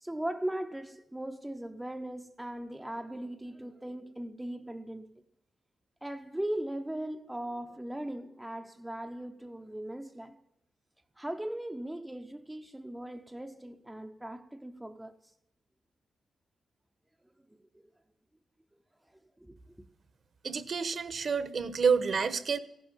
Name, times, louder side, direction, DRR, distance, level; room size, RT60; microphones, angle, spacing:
voice 1, 0.0-5.1 6.0-10.4 11.2-15.1 17.7-17.9 19.4-19.9, right 1 dB, 5° right, 0.6 m, -39 dB
voice 2, 20.4-22.6, right 5 dB, 45° right, 1.0 m, -28 dB
15.0 x 11.5 x 7.2 m
wide cardioid pair, 140°, 0 cm